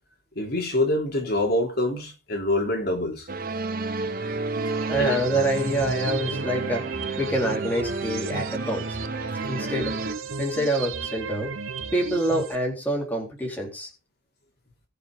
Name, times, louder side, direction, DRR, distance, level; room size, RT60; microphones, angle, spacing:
voice 1, 0.4-3.3 5.0-5.2, left 1 dB, 50° left, 3.5 m, -25 dB
sound 1, 3.3-10.1, right 3 dB, 45° right, 1.3 m, -31 dB
sound 2, 4.6-12.6, right 5 dB, 90° right, 1.0 m, -35 dB
voice 2, 4.9-6.8 7.2-8.9 9.5-9.9 10.4-11.5 11.9-13.9, right 1 dB, 10° left, 3.8 m, -26 dB
20.5 x 6.9 x 3.9 m
head